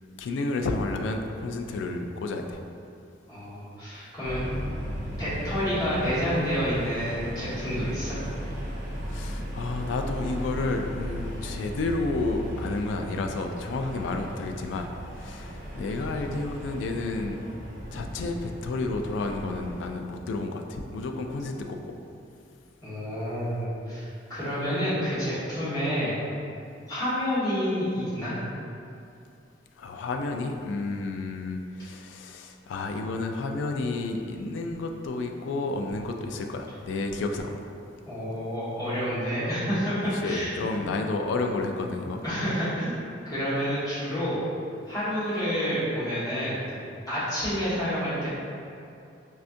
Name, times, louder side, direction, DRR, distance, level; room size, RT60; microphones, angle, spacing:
voice 1, 0.2-2.6 9.0-14.9 15.1-17.5 17.9-22.0 29.8-37.7 40.1-42.2, left 3 dB, 85° left, 4 dB, 0.3 m, -31 dB
voice 2, 3.3-4.4 5.2-8.2 22.8-26.2 26.9-28.3 38.1-40.8 42.2-43.0 43.2-44.4 44.9-46.6 47.1-48.3, equal, 20° left, -13 dB, 1.4 m, -29 dB
sound 1, 4.2-19.9, equal, 45° right, 0.6 m, -36 dB
4.3 x 2.3 x 2.6 m, 2.6 s
head